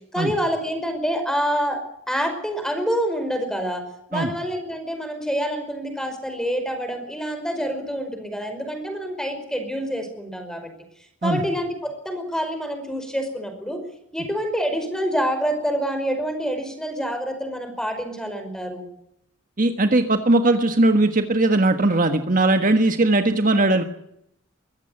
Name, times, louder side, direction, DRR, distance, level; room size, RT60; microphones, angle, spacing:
voice 1, 0.1-1.8 2.1-3.8 4.1-10.7 11.2-13.8 14.1-18.9, equal, 5° left, 7 dB, 5.1 m, -27 dB
voice 2, 19.6-23.8, right 2 dB, 45° right, 7 dB, 1.5 m, -19 dB
23.0 x 16.0 x 8.1 m, 0.77 s
head